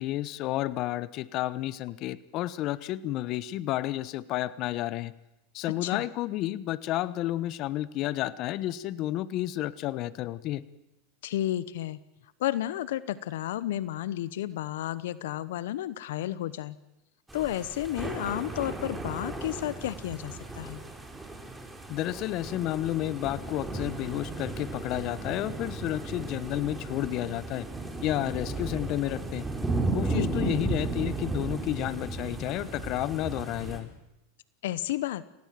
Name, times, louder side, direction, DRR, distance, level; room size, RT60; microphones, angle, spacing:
voice 1, 0.0-5.1 5.5-10.6 21.9-27.7 28.0-29.5 29.9-33.9, left 15 dB, 45° left, 17 dB, 1.0 m, -31 dB
voice 2, 11.2-12.0 12.4-16.8 17.3-20.8 30.1-30.6 34.6-35.2, left 13 dB, 70° left, 17 dB, 1.0 m, -32 dB
sound 1, 17.3-33.8, right 2 dB, 10° right, 4.7 m, -35 dB
29.0 x 17.5 x 7.6 m, 0.94 s
hypercardioid pair, 110°, 0 cm